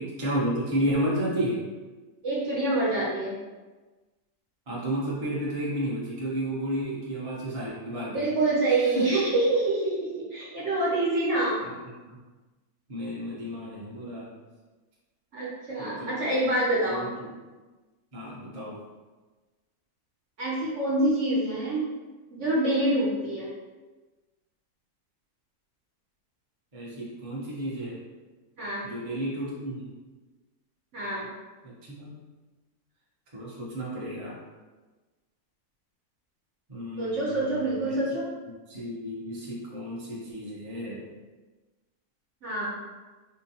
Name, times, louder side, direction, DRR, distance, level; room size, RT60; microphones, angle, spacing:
voice 1, 0.0-1.6 4.7-8.3 8.9-9.2 11.6-11.7 12.1-12.2 12.9-14.3 15.8-16.1 16.8-17.4 18.1-18.8 26.7-28.0 28.8-29.9 31.6-32.1 33.3-34.4 36.7-38.0 38.7-41.0, right 1 dB, 30° right, -7 dB, 0.7 m, -32 dB
voice 2, 2.2-3.3 8.1-11.6 15.3-17.0 20.4-21.8 22.3-23.5 28.6-28.9 30.9-31.3 37.0-38.2 42.4-42.7, right 2 dB, 55° right, -7 dB, 1.0 m, -26 dB
4.4 x 2.2 x 2.8 m, 1.3 s
omnidirectional pair, 1.7 m